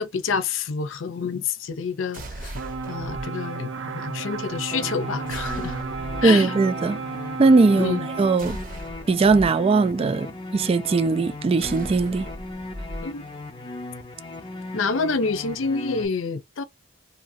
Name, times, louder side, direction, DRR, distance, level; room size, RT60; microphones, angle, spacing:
voice 1, 0.0-2.6 2.9-5.7 6.2-6.5 7.8-8.1 13.0-13.2 14.7-16.6, left 5 dB, 75° left, 0.6 m, -28 dB
sound 1, 2.1-3.2 5.3-6.3 8.4-9.5 11.6-13.0, right 1 dB, 45° right, 0.9 m, -37 dB
sound 2, 2.5-8.4, right 4 dB, 75° right, 0.7 m, -33 dB
sound 3, 4.7-16.0, left 2 dB, 25° left, 0.7 m, -38 dB
voice 2, 6.2-7.0 7.4-8.6 9.1-12.3, right 3 dB, 30° right, 0.3 m, -19 dB
2.8 x 2.6 x 2.6 m
head